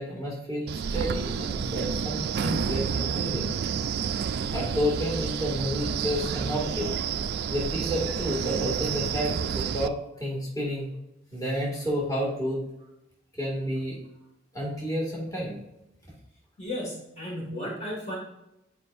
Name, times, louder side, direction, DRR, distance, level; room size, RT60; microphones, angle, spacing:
voice 1, 0.0-3.6 4.5-6.9 7.5-10.9 11.3-12.6 13.3-14.0 14.5-15.6, equal, 20° left, -5 dB, 2.0 m, -30 dB
Wind, 0.7-9.9, right 6 dB, 55° right, 0.3 m, -30 dB
voice 2, 16.6-18.2, left 1 dB, 35° left, -4 dB, 1.9 m, -34 dB
9.7 x 5.0 x 2.5 m, 0.90 s
head